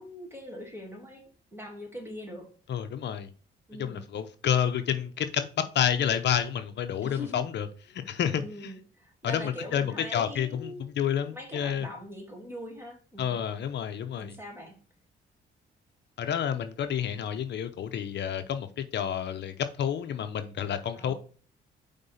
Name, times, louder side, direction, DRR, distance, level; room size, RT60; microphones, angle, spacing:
voice 1, 0.0-2.5 3.7-4.0 7.0-7.4 8.4-10.8 11.3-13.3 14.2-14.8 20.9-21.1, left 1 dB, 10° right, 2.2 m, -42 dB
voice 2, 2.7-3.3 3.8-7.7 7.9-8.7 9.2-11.9 13.2-14.3 16.2-21.1, left 9 dB, 60° left, 0.7 m, -29 dB
5.2 x 3.6 x 5.6 m
cardioid pair, 90°, 20 cm